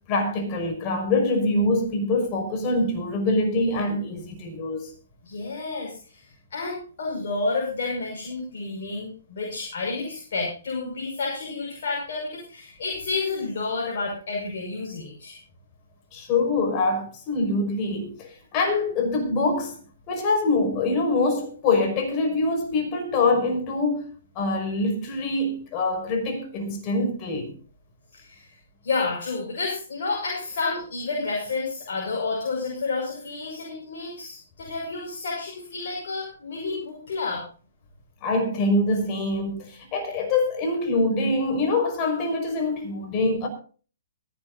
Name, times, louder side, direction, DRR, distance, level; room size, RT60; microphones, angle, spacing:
voice 1, 0.1-4.9 16.1-19.8 20.1-24.1 24.4-27.5 38.2-43.5, left 2 dB, 30° left, 5.5 m, -24 dB
voice 2, 5.2-15.4 28.1-28.6 28.8-37.4, left 3 dB, 55° left, 5.7 m, -30 dB
23.0 x 11.5 x 2.7 m
figure-of-eight pair, 125°, 0 cm